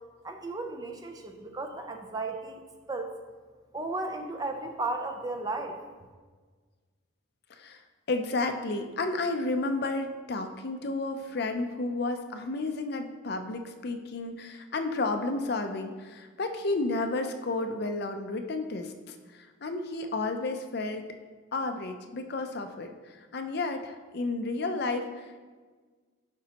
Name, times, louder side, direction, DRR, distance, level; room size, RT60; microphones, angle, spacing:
voice 1, 0.2-2.6 2.9-3.2 3.7-5.8, right 2 dB, 20° right, 4 dB, 0.5 m, -34 dB
voice 2, 7.5-7.8 8.1-21.0 21.5-25.4, left 2 dB, 50° left, 6 dB, 0.5 m, -32 dB
11.0 x 5.0 x 2.9 m, 1.4 s
head